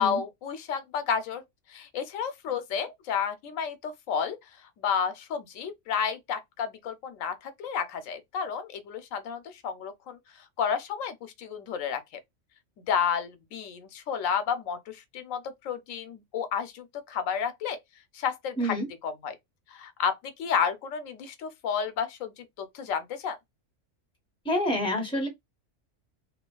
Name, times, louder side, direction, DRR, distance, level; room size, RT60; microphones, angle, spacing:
voice 1, 0.0-1.4 1.7-4.4 4.8-10.2 10.6-12.0 12.9-17.8 18.1-18.8 19.0-19.3 19.7-23.4, left 7 dB, 85° left, 1.0 m, -31 dB
voice 2, 24.4-25.3, left 1 dB, 5° left, 0.8 m, -27 dB
2.9 x 2.4 x 2.2 m
omnidirectional pair, 1.3 m